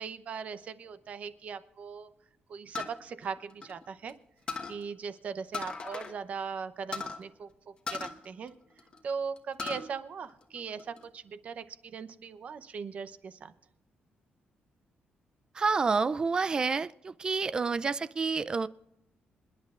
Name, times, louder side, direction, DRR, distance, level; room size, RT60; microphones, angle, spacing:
voice 1, 0.0-2.1 2.5-4.1 4.7-8.5 9.0-13.5, right 6 dB, 45° right, 12 dB, 0.7 m, -39 dB
sound 1, 2.7-4.1 4.5-4.8 5.5-6.2 6.4-6.5 6.9-7.2 7.9-9.0 9.4-9.9 10.3-11.0, left 4 dB, 30° left, 1.2 m, -38 dB
voice 2, 15.5-18.7, right 4 dB, 25° right, 17 dB, 0.3 m, -29 dB
27.5 x 10.5 x 2.4 m, 0.83 s
cardioid pair, 175°, 3 cm